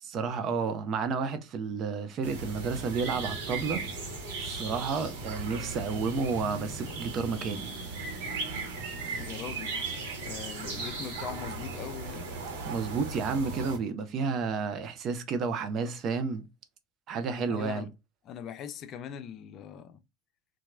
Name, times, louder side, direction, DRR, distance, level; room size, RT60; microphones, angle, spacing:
voice 1, 0.0-3.8 4.4-7.7 12.7-16.5 17.1-17.9, right 5 dB, 45° right, 0.6 m, -31 dB
sound 1, 2.2-13.8, right 3 dB, 65° right, 1.1 m, -37 dB
voice 2, 9.1-9.8 10.2-12.3 17.5-17.9 18.2-20.0, left 8 dB, 45° left, 0.4 m, -41 dB
2.9 x 2.3 x 2.3 m
figure-of-eight pair, 70°, 0 cm